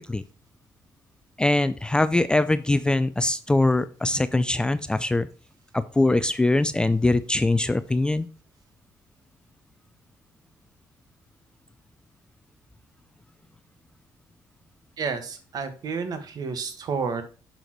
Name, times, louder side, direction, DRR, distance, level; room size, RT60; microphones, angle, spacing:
voice 1, 1.4-5.3 5.7-8.3, left 2 dB, 10° left, 13 dB, 0.4 m, -22 dB
voice 2, 15.0-17.2, right 5 dB, 55° right, 8 dB, 1.6 m, -30 dB
6.8 x 6.2 x 3.0 m, 0.37 s
cardioid pair, 110°, 8 cm